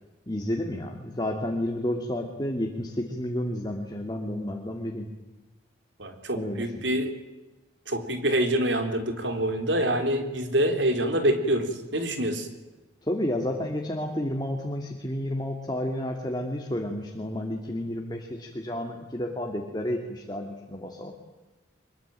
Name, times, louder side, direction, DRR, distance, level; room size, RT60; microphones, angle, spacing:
voice 1, 0.3-5.1 6.3-6.7 13.0-21.1, left 1 dB, 20° left, 2 dB, 2.6 m, -31 dB
voice 2, 6.0-7.1 7.9-12.5, right 1 dB, 70° right, 6 dB, 3.9 m, -26 dB
24.5 x 22.5 x 9.1 m, 1.1 s
head